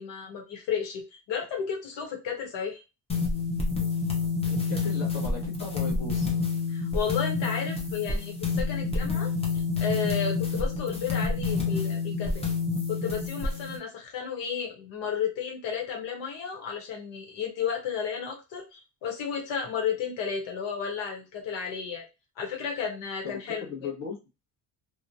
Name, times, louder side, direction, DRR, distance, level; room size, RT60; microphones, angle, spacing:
voice 1, 0.0-2.8 6.7-12.5 12.9-22.0 22.4-23.9, left 7 dB, 85° left, 1 dB, 1.0 m, -33 dB
sound 1, 3.1-13.8, left 4 dB, 15° left, 0.6 m, -28 dB
voice 2, 4.5-6.3 23.2-24.1, left 5 dB, 35° left, -3 dB, 1.0 m, -37 dB
2.9 x 2.1 x 2.5 m, 0.27 s
cardioid pair, 170°, 43 cm